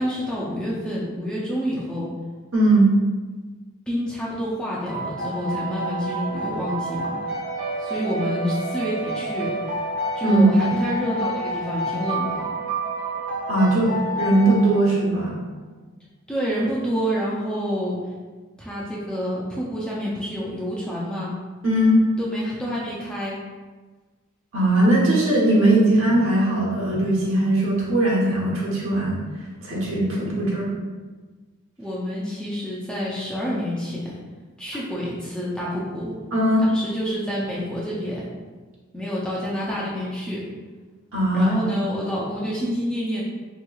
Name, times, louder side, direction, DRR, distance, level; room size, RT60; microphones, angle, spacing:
voice 1, 0.0-2.1 3.9-7.2 7.8-9.5 10.2-12.4 16.3-18.0 18.6-21.3 22.2-23.4 31.8-34.1 34.6-36.1 36.6-38.3 38.9-40.5 41.3-43.2, equal, 5° left, -7 dB, 0.4 m, -28 dB
voice 2, 2.5-2.9 10.2-10.5 13.5-13.9 14.2-15.3 21.6-22.0 24.5-29.2 29.6-30.7 36.3-36.6 41.1-41.5, right 1 dB, 65° right, -6 dB, 1.0 m, -19 dB
sound 1, 4.9-15.3, right 2 dB, 40° right, 0.9 m, -29 dB
3.5 x 3.0 x 2.3 m, 1.3 s
head